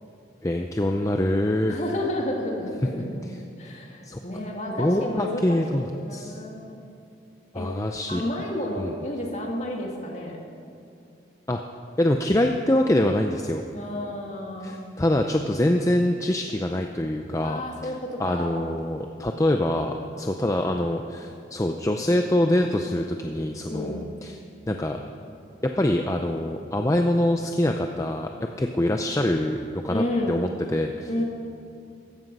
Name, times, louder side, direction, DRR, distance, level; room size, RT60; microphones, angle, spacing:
voice 1, 0.4-1.8 3.3-3.4 4.0-4.2 4.8-6.4 7.5-8.2 8.8-8.9 11.5-11.6 12.0-13.6 14.6-24.4 24.7-25.0 25.6-28.3 28.6-31.1, left 1 dB, 15° left, 4 dB, 0.5 m, -25 dB
voice 2, 1.7-3.2 3.6-6.8 7.5-7.7 8.1-10.4 13.7-14.8 17.4-18.6 23.7-24.0 29.9-30.4 31.1-31.2, left 1 dB, 40° left, 0 dB, 2.2 m, -31 dB
15.5 x 14.0 x 5.4 m, 2.5 s
head